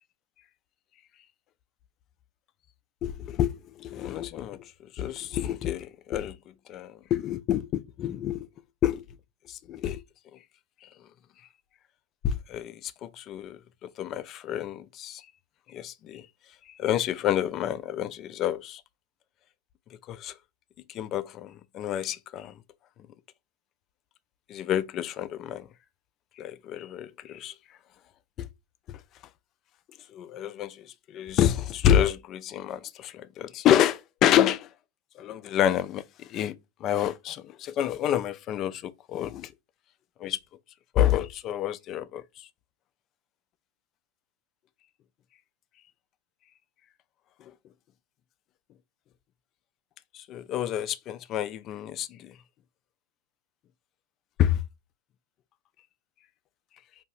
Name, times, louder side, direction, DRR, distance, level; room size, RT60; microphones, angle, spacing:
voice 1, 3.0-4.7 4.9-6.4 6.7-8.5 8.8-9.0 9.5-10.0 12.2-15.2 15.7-16.2 16.8-18.8 20.1-20.3 20.9-22.5 24.5-25.7 26.4-27.5 28.4-28.5 28.9-29.0 30.1-34.7 35.2-36.5 36.8-39.5 40.2-40.4 40.9-42.2 50.1-52.3 54.4-54.6, left 11 dB, 35° left, 0.3 m, -28 dB
4.6 x 2.6 x 2.3 m
figure-of-eight pair, 90°, 0 cm